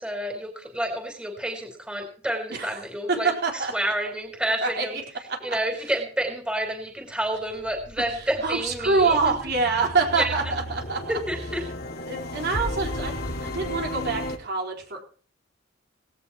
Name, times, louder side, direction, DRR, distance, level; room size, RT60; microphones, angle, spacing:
voice 1, 0.0-5.0 5.4-9.3 10.1-10.4 11.1-11.6, right 1 dB, 5° right, 2 dB, 4.0 m, -29 dB
voice 2, 3.4-3.7 4.6-4.8 8.4-11.0 12.1-13.1 13.4-15.0, right 4 dB, 55° right, 0 dB, 4.4 m, -25 dB
sound 1, 7.1-14.4, left 1 dB, 55° left, 2.4 m, -34 dB
19.0 x 17.5 x 3.1 m, 0.43 s
head